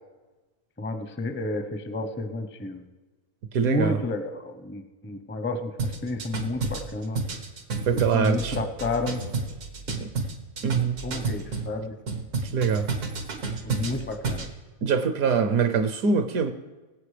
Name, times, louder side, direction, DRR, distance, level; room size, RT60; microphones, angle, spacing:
voice 1, 0.8-2.8 3.6-7.2 7.9-9.2 11.0-11.9 13.6-14.5, left 2 dB, 15° left, 8 dB, 0.4 m, -31 dB
voice 2, 3.5-4.0 7.9-8.6 10.0-10.1 10.6-11.0 12.5-12.9 14.8-16.5, right 6 dB, 75° right, 8 dB, 1.1 m, -23 dB
sound 1, 5.8-11.7 12.1-14.5, right 4 dB, 90° right, 1.8 m, -30 dB
23.0 x 8.1 x 3.3 m, 1.2 s
omnidirectional pair, 1.6 m